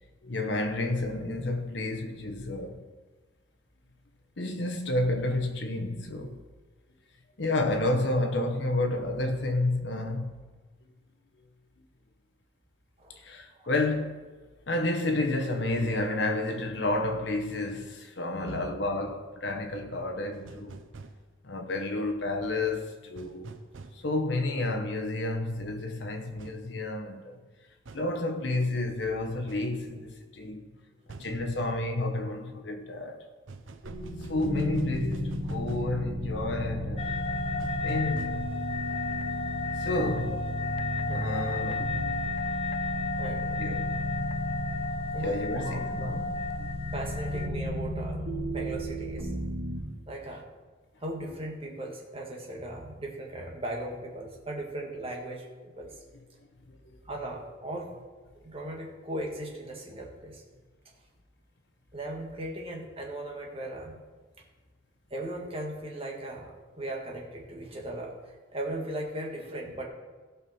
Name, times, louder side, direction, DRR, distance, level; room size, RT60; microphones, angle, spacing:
voice 1, 0.2-2.8 4.4-6.4 7.4-10.4 13.2-14.2 14.7-20.8 21.4-23.6 24.0-27.4 27.9-30.6 31.2-33.2 34.3-37.1 37.8-38.5 39.8-40.4 41.1-42.1 43.5-44.3 45.2-46.7 56.7-57.0, left 2 dB, 60° left, 1.2 m, -30 dB
voice 2, 18.4-18.7 23.2-23.4 31.7-31.8 41.0-41.5 43.2-43.7 45.1-46.1 46.9-49.3 50.1-50.4 51.0-56.0 57.1-57.9 58.4-60.4 61.9-64.0 65.1-69.9, right 1 dB, 30° right, 1.6 m, -38 dB
sound 1, 20.3-21.2 23.2-24.0 26.4-26.6 27.9-28.1 29.5-29.7 31.1-31.4 33.5-35.9 37.6-38.3, right 3 dB, 80° right, 0.7 m, -46 dB
sound 2, 33.8-49.8, equal, 60° right, 2.8 m, -34 dB
sound 3, 37.0-47.5, left 3 dB, 30° left, 0.4 m, -34 dB
16.5 x 5.6 x 4.4 m
head